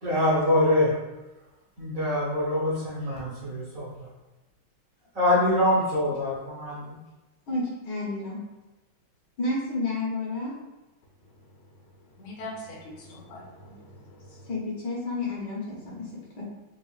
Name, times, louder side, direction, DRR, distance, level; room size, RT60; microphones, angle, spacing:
voice 1, 0.0-0.9 1.8-4.1 5.1-6.9, left 1 dB, 50° right, -8 dB, 1.2 m, -24 dB
voice 2, 7.5-8.4 9.4-10.5 14.4-16.4, left 2 dB, 60° left, -5 dB, 1.5 m, -31 dB
voice 3, 12.2-14.5, left 1 dB, 85° left, -2 dB, 1.7 m, -42 dB
4.6 x 2.4 x 2.3 m, 1.0 s
omnidirectional pair, 2.2 m